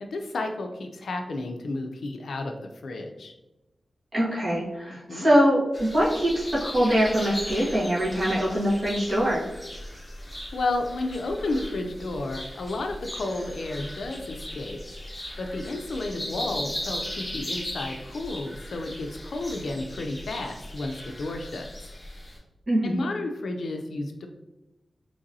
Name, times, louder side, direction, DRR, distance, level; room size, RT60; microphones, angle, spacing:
voice 1, 0.0-3.3 4.9-5.3 10.3-14.8 15.4-21.9 22.8-24.3, left 2 dB, 85° left, 4 dB, 0.3 m, -32 dB
voice 2, 4.1-9.5 22.7-23.0, equal, 40° right, -7 dB, 1.4 m, -23 dB
sound 1, 5.7-22.4, left 1 dB, 10° left, 1.0 m, -38 dB
3.9 x 3.0 x 2.6 m, 1.0 s
wide cardioid pair, 135°, 0 cm